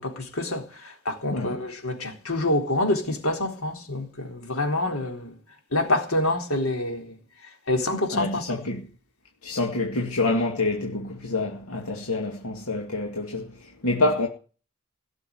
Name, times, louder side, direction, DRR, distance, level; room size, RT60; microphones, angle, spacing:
voice 1, 0.0-5.4 5.7-7.2 7.7-8.6, left 1 dB, 75° left, 3.8 m, -27 dB
voice 2, 8.1-8.8 9.4-13.5 13.8-14.3, left 2 dB, 90° left, 2.4 m, -26 dB
17.0 x 6.9 x 10.0 m
head